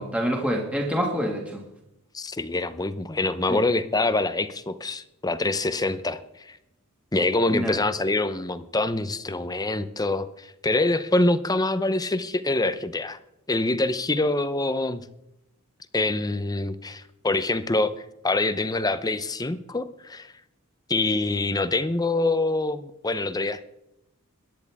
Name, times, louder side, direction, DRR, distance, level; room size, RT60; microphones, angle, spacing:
voice 1, 0.0-1.6 3.5-3.6 7.5-7.8, equal, 5° right, -1 dB, 2.0 m, -26 dB
voice 2, 2.1-6.6 7.1-13.2 13.5-15.0 15.9-17.9 18.2-20.3 20.9-23.6, left 2 dB, 20° left, 12 dB, 0.7 m, -25 dB
22.0 x 10.5 x 3.6 m, 0.85 s
head